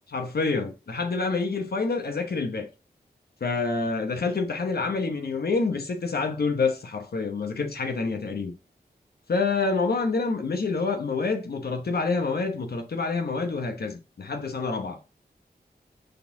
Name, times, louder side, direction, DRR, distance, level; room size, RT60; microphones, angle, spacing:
voice 1, 0.1-2.7 3.4-8.5 9.3-15.0, left 4 dB, 70° left, 1.0 m, -27 dB
6.6 x 4.2 x 4.8 m
wide cardioid pair, 60°, 17 cm